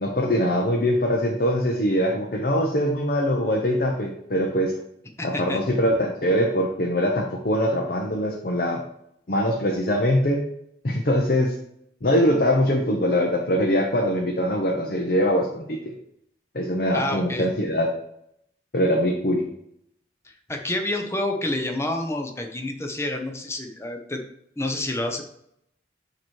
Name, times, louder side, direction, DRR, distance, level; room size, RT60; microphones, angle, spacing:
voice 1, 0.0-4.8 5.2-8.8 9.3-10.5 10.8-11.5 12.0-15.9 16.5-17.9 18.7-19.5, equal, 55° left, 1 dB, 0.7 m, -22 dB
voice 2, 5.2-5.6 16.9-17.4 20.2-24.2 24.6-25.2, left 1 dB, 15° left, 3 dB, 0.8 m, -28 dB
8.9 x 3.0 x 4.6 m, 0.74 s
head